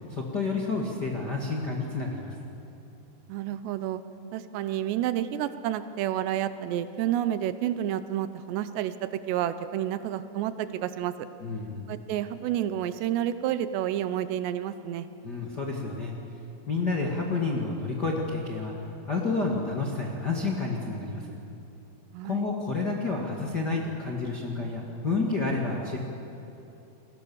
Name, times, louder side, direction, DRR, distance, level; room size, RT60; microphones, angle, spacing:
voice 1, 0.1-2.3 11.4-11.9 15.2-16.1 16.7-18.7 19.1-21.4 22.2-26.0, left 3 dB, 35° left, -1 dB, 1.6 m, -30 dB
voice 2, 3.3-4.0 4.3-11.1 11.9-15.1 22.1-22.5, right 11 dB, 80° right, 12 dB, 2.9 m, -30 dB
29.0 x 21.5 x 7.1 m, 3.0 s
omnidirectional pair, 5.1 m